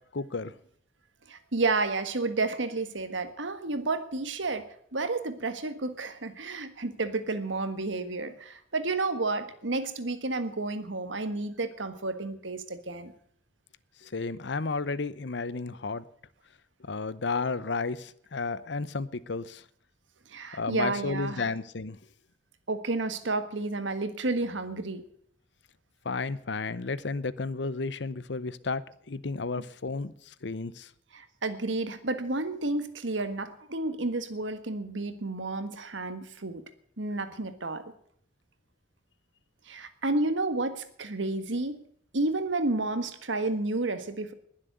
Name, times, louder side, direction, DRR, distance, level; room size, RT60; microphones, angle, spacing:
voice 1, 0.1-0.5 14.0-16.0 16.9-19.6 20.5-22.0 26.0-28.8 29.1-30.9, left 4 dB, 65° left, 17 dB, 0.8 m, -32 dB
voice 2, 1.3-4.6 4.9-13.1 20.3-21.4 22.7-25.0 31.1-36.6 37.0-37.8 39.7-41.8 42.1-44.3, right 2 dB, 85° right, 10 dB, 1.6 m, -31 dB
20.5 x 7.5 x 8.0 m, 0.65 s
head